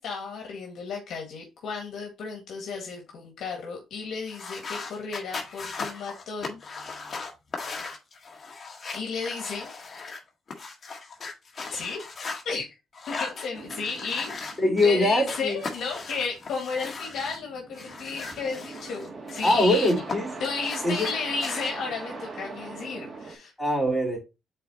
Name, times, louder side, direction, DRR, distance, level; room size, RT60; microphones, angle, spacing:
voice 1, 0.0-6.6 8.9-9.7 11.7-12.0 12.5-12.7 13.1-19.9 20.4-23.5, left 4 dB, 70° left, 1.8 m, -33 dB
sound 1, 4.3-12.4 12.9-14.9 15.2-17.4 17.7-20.2 20.4-21.7, left 4 dB, 40° left, 1.7 m, -38 dB
sound 2, 13.5-23.4, right 4 dB, 40° right, 2.2 m, -42 dB
voice 2, 14.6-15.6 19.4-20.3 20.8-21.1 23.6-24.2, left 1 dB, 10° left, 3.9 m, -22 dB
7.7 x 4.3 x 2.8 m
cardioid pair, 90°, 0 cm